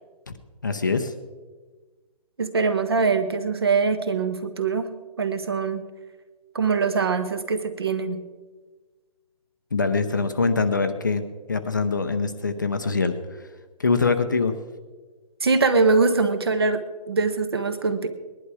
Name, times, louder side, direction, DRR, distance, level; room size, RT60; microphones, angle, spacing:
voice 1, 0.6-1.1 9.7-13.2 13.8-14.5, left 4 dB, 30° left, 8 dB, 0.7 m, -23 dB
voice 2, 2.4-5.8 6.5-8.2 15.4-18.1, right 4 dB, 35° right, 10 dB, 1.0 m, -23 dB
20.0 x 11.0 x 4.9 m, 1.4 s
hypercardioid pair, 175°, 21 cm